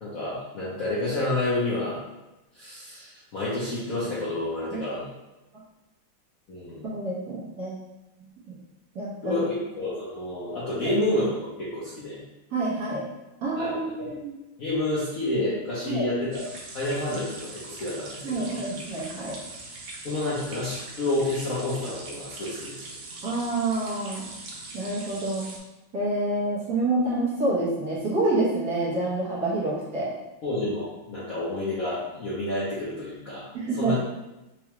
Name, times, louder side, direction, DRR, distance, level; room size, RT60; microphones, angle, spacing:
voice 1, 0.0-2.0 2.5-5.1 6.5-6.9 9.2-12.2 13.6-14.1 14.6-16.4 16.7-18.5 20.0-22.7 30.4-33.4 33.8-34.0, left 2 dB, 60° left, -9 dB, 0.9 m, -29 dB
voice 2, 6.8-7.8 8.9-9.5 10.8-10.9 12.5-13.0 13.4-14.3 15.9-16.1 18.2-19.4 23.2-24.3 24.7-25.5 25.9-30.1 33.5-34.0, right 2 dB, 55° right, -8 dB, 1.3 m, -27 dB
sound 1, 16.3-25.6, right 2 dB, 85° right, 1.6 m, -41 dB
4.8 x 2.3 x 3.0 m, 1.0 s
omnidirectional pair, 2.4 m